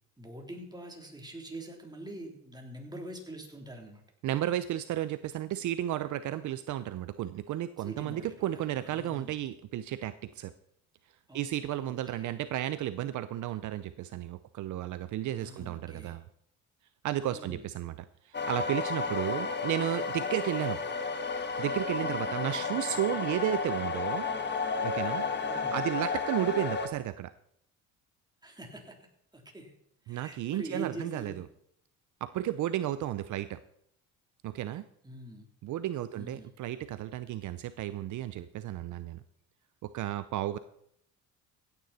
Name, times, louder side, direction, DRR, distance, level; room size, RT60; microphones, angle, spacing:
voice 1, 0.2-4.0 7.8-9.3 11.3-12.3 15.4-16.2 17.3-17.6 22.5-23.0 25.4-25.8 28.4-29.0 29.3-29.7 30.0-31.4 35.0-35.5 36.1-36.5, right 1 dB, 10° right, 1 dB, 3.3 m, -45 dB
voice 2, 4.2-10.5 11.3-16.2 17.0-17.9 18.2-20.8 21.6-24.3 24.8-25.2 25.7-27.3 30.1-31.3 32.2-33.6 34.4-34.9 35.6-39.2 39.8-40.6, right 12 dB, 60° right, 13 dB, 0.7 m, -33 dB
sound 1, 18.3-26.9, left 4 dB, 30° left, 1.5 m, -32 dB
16.0 x 9.6 x 4.2 m, 0.71 s
supercardioid pair, 85°, 34 cm